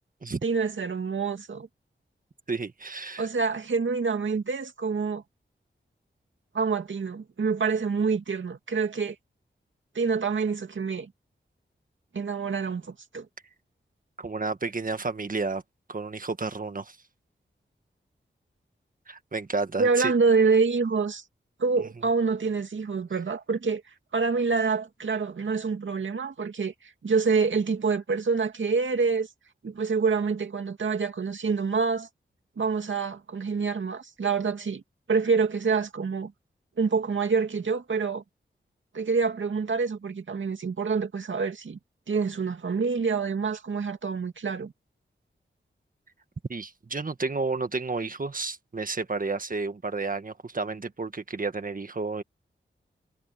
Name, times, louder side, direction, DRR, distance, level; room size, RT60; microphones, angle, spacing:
voice 1, 0.4-1.7 3.2-5.2 6.5-9.2 9.9-11.1 12.1-13.3 19.8-21.2 21.6-23.8 24.1-26.7 27.0-29.3 29.6-32.1 32.6-34.8 35.1-36.3 36.8-38.2 38.9-41.8 42.1-44.7, right 5 dB, 75° right, 2.3 m, -26 dB
voice 2, 2.5-3.3 14.2-15.6 15.9-17.0 19.1-20.1 46.5-52.2, right 3 dB, 45° right, 1.6 m, -31 dB
wide cardioid pair, 75°, 20 cm